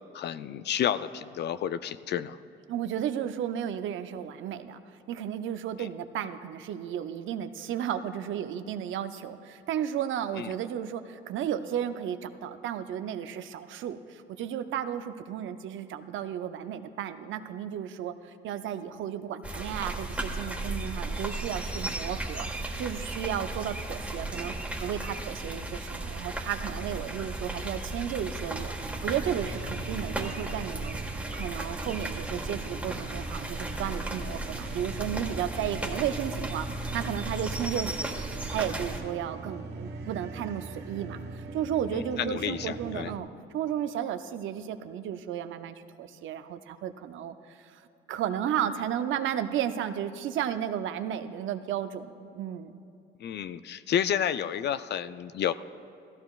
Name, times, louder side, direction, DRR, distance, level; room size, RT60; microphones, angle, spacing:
voice 1, 0.1-2.4 5.8-5.9 10.4-10.5 41.9-43.1 53.2-55.5, left 9 dB, 60° left, 13 dB, 0.4 m, -30 dB
voice 2, 2.7-31.0 31.3-36.7 36.9-38.2 38.5-43.3 43.5-47.8 48.1-52.7, right 9 dB, 80° right, 10 dB, 0.6 m, -33 dB
sound 1, 19.4-39.0, right 2 dB, 5° right, 1.5 m, -35 dB
sound 2, 28.8-43.2, right 3 dB, 60° right, 0.9 m, -41 dB
15.5 x 14.0 x 2.4 m, 2.7 s
cardioid pair, 90°, 20 cm